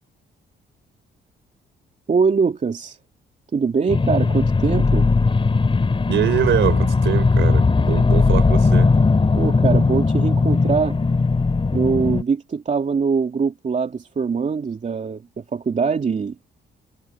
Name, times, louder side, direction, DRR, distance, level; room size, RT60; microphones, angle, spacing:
voice 1, 2.1-3.0 3.5-5.1 9.3-11.0 11.7-16.3, right 5 dB, 40° right, 2.9 m, -22 dB
sound 1, 3.9-12.2, left 4 dB, 25° left, 2.6 m, -18 dB
voice 2, 6.1-8.9, right 11 dB, 70° right, 3.6 m, -23 dB
cardioid pair, 90°, 20 cm